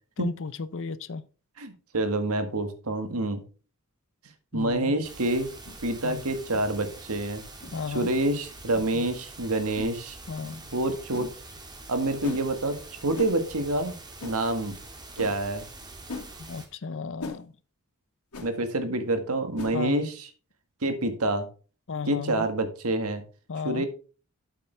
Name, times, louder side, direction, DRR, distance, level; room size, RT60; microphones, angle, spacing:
voice 1, 0.2-1.2 4.5-4.9 6.0-6.2 7.7-8.1 8.9-9.1 10.3-10.7 16.4-17.5 19.7-20.1 21.9-22.5 23.5-23.8, left 5 dB, 60° left, 0.6 m, -34 dB
voice 2, 1.6-3.4 4.5-5.5 5.8-7.4 7.9-10.2 10.7-11.3 11.9-12.8 13.0-13.9 14.2-14.8 15.2-15.7 18.4-20.1 20.8-21.5 22.1-23.2 23.6-23.9, right 2 dB, 85° right, 1.6 m, -27 dB
sound 1, 4.6-4.7 5.6-5.8 6.5-6.7 7.6-7.7 8.7-8.9 9.7-9.9 11.1-11.3 12.2-12.4 13.1-13.3 14.2-14.4 15.2-15.3 16.1-16.3 17.2-17.4 18.3-18.5 19.5-19.8, left 3 dB, 85° left, 2.6 m, -38 dB
sound 2, 5.0-16.7, right 2 dB, 20° right, 1.9 m, -45 dB
8.4 x 8.1 x 3.3 m
head